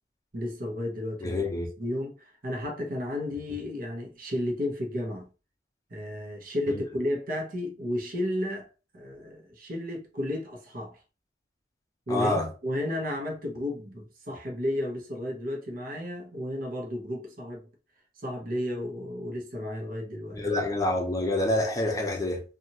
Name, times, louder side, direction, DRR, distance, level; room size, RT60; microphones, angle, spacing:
voice 1, 0.3-1.4 1.8-5.3 5.9-8.7 8.9-11.0 12.1-17.6 18.2-20.4, left 1 dB, 50° right, 0.9 m, -33 dB
voice 2, 1.2-1.7 12.1-12.5 20.3-22.4, left 1 dB, 20° left, 0.7 m, -27 dB
2.9 x 2.5 x 2.7 m
head